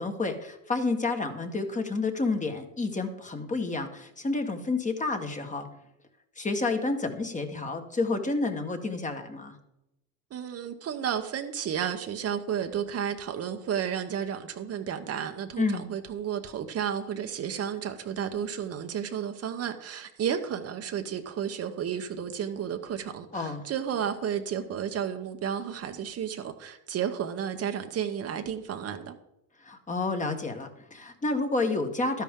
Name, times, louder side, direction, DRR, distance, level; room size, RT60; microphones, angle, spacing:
voice 1, 0.0-5.7 6.4-9.5 15.6-15.9 23.3-23.6 29.6-32.2, left 3 dB, 20° left, 6 dB, 1.4 m, -30 dB
voice 2, 10.3-29.1, right 8 dB, 40° right, 7 dB, 0.9 m, -32 dB
12.0 x 10.5 x 3.7 m, 0.87 s
supercardioid pair, 105°, 37 cm